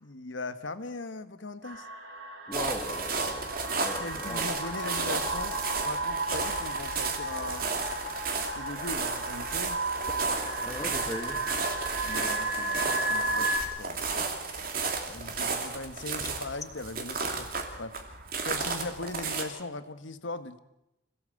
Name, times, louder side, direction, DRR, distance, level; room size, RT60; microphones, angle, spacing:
voice 1, 0.0-1.9 3.1-3.2 4.0-7.7 8.4-9.8 12.0-14.0 15.1-17.5 17.8-18.0 18.4-20.6, left 2 dB, 85° left, 11 dB, 1.4 m, -39 dB
sound 1, 1.6-13.6, right 2 dB, 85° right, 4.7 m, -34 dB
voice 2, 2.5-4.4 10.6-11.4 13.4-13.5, left 1 dB, 15° left, 6 dB, 2.0 m, -38 dB
sound 2, 2.5-19.4, right 4 dB, 50° right, 2.7 m, -33 dB
26.0 x 17.0 x 7.9 m, 0.90 s
head